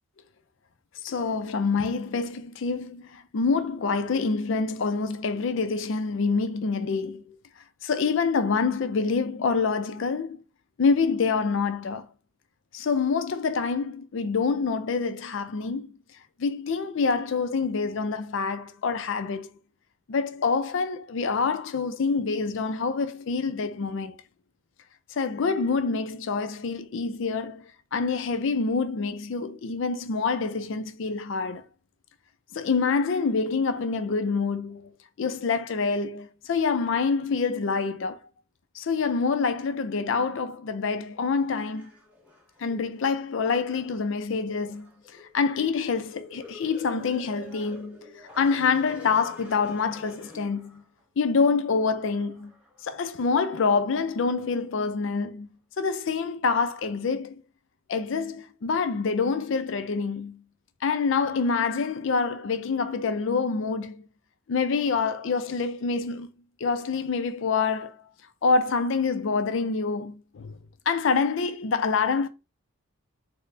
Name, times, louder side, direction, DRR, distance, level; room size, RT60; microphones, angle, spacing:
voice 1, 1.0-7.4 7.8-10.4 10.8-12.1 12.7-15.9 16.4-19.5 20.1-24.2 25.1-31.6 32.5-34.9 35.2-38.2 38.8-41.9 42.6-44.9 45.3-48.0 48.4-50.8 51.2-52.5 52.8-55.5 55.8-57.4 57.9-60.4 60.8-64.1 64.5-66.3 66.6-68.0 68.4-70.5 70.9-72.3, left 4 dB, 60° left, 0.4 m, -26 dB
sound 1, 41.1-51.0 51.6-54.6 55.2-55.3, left 3 dB, 5° right, 0.8 m, -49 dB
4.0 x 2.1 x 3.2 m
head